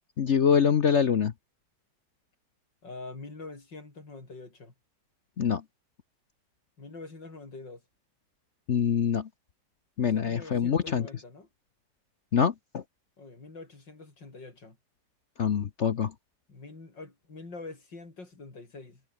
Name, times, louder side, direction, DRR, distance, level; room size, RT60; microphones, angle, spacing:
voice 1, 0.2-1.3 5.4-5.6 8.7-9.3 10.0-11.1 12.3-12.8 15.4-16.1, left 7 dB, 50° left, 1.0 m, -24 dB
voice 2, 2.8-4.7 6.8-7.8 10.0-11.5 13.2-14.8 16.5-19.0, left 3 dB, 85° left, 5.8 m, -45 dB
omnidirectional pair, 1.9 m